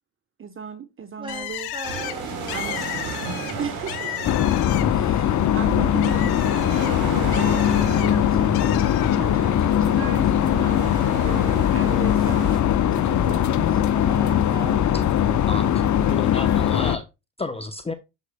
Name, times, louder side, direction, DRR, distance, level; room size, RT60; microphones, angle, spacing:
voice 1, 0.4-1.7 2.5-2.9 3.6-4.3 4.9-8.8 9.1-13.8, right 7 dB, 35° right, 1.1 m, -37 dB
voice 2, 1.2-2.6 13.9-14.8, right 1 dB, 15° right, 2.4 m, -37 dB
Bird, 1.3-5.1 5.5-8.1 8.5-9.2, left 13 dB, 90° left, 1.4 m, -34 dB
sound 1, 1.8-12.6, right 4 dB, 75° right, 3.9 m, -35 dB
sound 2, 4.2-17.0, left 10 dB, 50° left, 1.0 m, -20 dB
voice 3, 14.9-15.7 16.1-17.0 17.4-17.9, left 2 dB, 15° left, 0.9 m, -32 dB
8.2 x 7.6 x 2.3 m
supercardioid pair, 80°, 37 cm